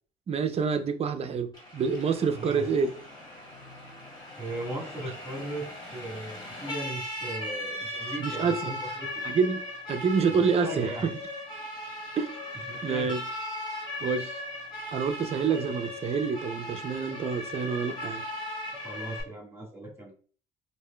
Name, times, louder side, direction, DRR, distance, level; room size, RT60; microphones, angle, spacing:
voice 1, 0.3-2.9 8.2-8.7 9.2-11.1 12.2-12.4 12.8-13.2 14.0-14.4 14.9-18.2, right 5 dB, 35° right, 0.5 m, -27 dB
Siren, 1.5-19.2, left 1 dB, 25° left, 1.2 m, -38 dB
voice 2, 2.3-2.6 4.4-9.3 10.4-11.1 12.7-13.1 18.8-20.1, right 1 dB, 15° right, 1.5 m, -38 dB
4.7 x 2.6 x 2.2 m
cardioid pair, 110°, 17 cm